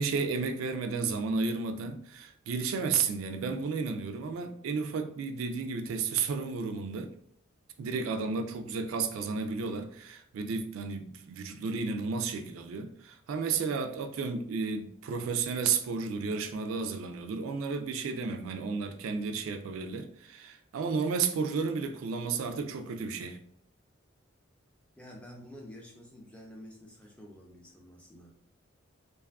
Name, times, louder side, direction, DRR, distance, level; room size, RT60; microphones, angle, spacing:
voice 1, 0.0-7.1 7.8-23.4, right 5 dB, 80° right, 0.3 m, -32 dB
voice 2, 25.0-28.4, equal, 5° left, 0.4 m, -49 dB
2.5 x 2.3 x 2.3 m
head